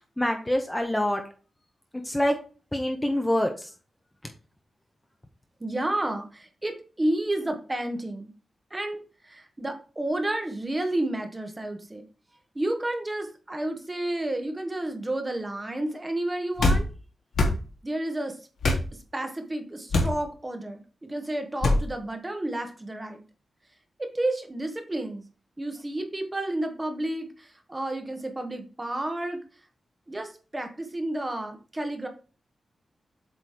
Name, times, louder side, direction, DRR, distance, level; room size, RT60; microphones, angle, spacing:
voice 1, 0.2-1.2 2.1-2.4 2.7-3.7, left 1 dB, 10° left, 4 dB, 0.7 m, -25 dB
voice 2, 5.6-8.3 8.7-12.0 12.5-16.9 17.8-18.4 19.1-23.2 24.0-25.2 25.6-29.4 30.1-32.1, right 1 dB, 15° right, 5 dB, 1.0 m, -31 dB
sound 1, 16.6-16.8 17.3-17.6 18.6-18.8 19.9-20.2 21.6-21.8, left 2 dB, 85° left, 1.6 m, -21 dB
7.8 x 3.0 x 4.9 m, 0.37 s
wide cardioid pair, 150°, 0 cm